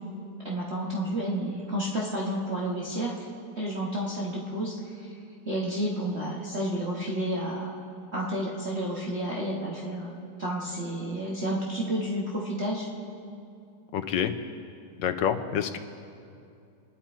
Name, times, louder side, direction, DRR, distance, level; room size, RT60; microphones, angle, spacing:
voice 1, 0.4-3.1 3.6-5.1 5.4-7.7 8.1-12.9, right 1 dB, 40° right, -4 dB, 1.7 m, -31 dB
voice 2, 13.9-14.3 15.0-15.8, left 8 dB, 90° left, 8 dB, 1.6 m, -27 dB
27.0 x 10.5 x 4.4 m, 2.5 s
omnidirectional pair, 2.0 m